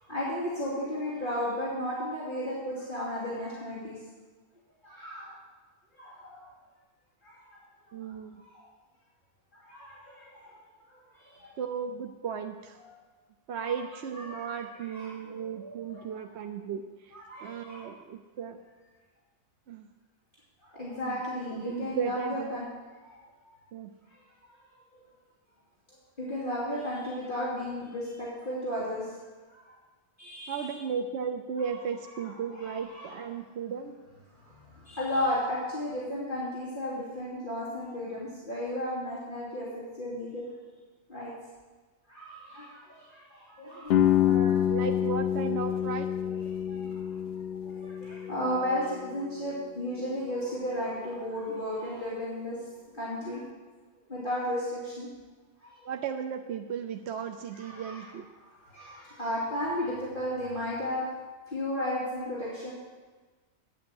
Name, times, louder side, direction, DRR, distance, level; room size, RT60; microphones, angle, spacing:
voice 1, 0.1-4.0 4.8-5.4 5.9-6.5 7.2-7.4 8.0-8.5 9.6-10.5 11.1-11.5 12.8-12.9 13.5-13.7 14.1-14.6 14.9-16.1 17.1-17.9 20.6-22.6 23.0-23.2 26.2-29.1 29.5-29.7 30.2-30.8 32.2-32.3 32.5-33.2 34.4-39.7 40.0-40.5 41.1-41.3 42.1-44.3 46.2-47.3 47.6-52.6 52.9-53.4 54.1-55.1 55.6-55.7 57.5-58.1 58.7-61.0 61.5-62.7, left 1 dB, 45° left, -9 dB, 3.2 m, -34 dB
voice 2, 7.9-8.4 11.6-12.8 13.5-17.1 17.4-18.6 19.7-19.9 21.0-22.5 23.7-23.9 30.5-34.0 44.2-46.1 55.8-58.3, right 6 dB, 70° right, 5 dB, 0.9 m, -35 dB
sound 1, 43.9-49.7, left 10 dB, 65° left, 0.8 m, -28 dB
9.3 x 8.8 x 7.7 m, 1.3 s
omnidirectional pair, 1.2 m